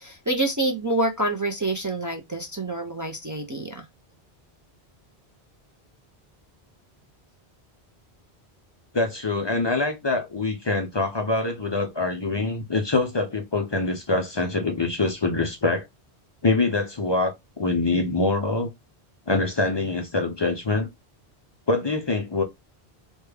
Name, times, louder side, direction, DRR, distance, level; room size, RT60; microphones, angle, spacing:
voice 1, 0.0-3.8, right 2 dB, 30° right, 0.3 m, -27 dB
voice 2, 8.9-15.9 16.4-18.7 19.3-20.9 21.7-22.4, left 3 dB, 40° left, 0.4 m, -24 dB
3.3 x 2.2 x 3.3 m
omnidirectional pair, 1.1 m